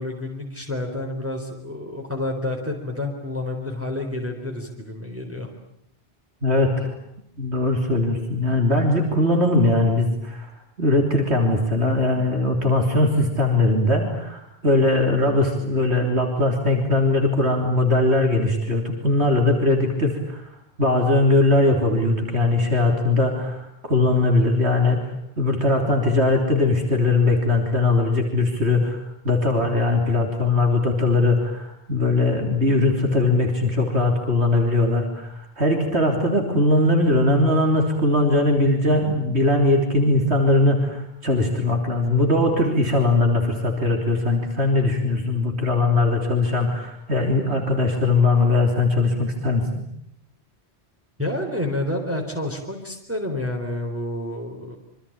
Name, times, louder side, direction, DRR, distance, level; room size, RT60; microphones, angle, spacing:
voice 1, 0.0-5.5 51.2-54.8, left 1 dB, 10° right, 1 dB, 3.9 m, -29 dB
voice 2, 6.4-7.0 7.4-10.5 10.8-20.4 20.8-49.6, left 2 dB, 80° right, 2 dB, 3.8 m, -20 dB
27.0 x 25.5 x 8.8 m, 0.72 s
omnidirectional pair, 1.1 m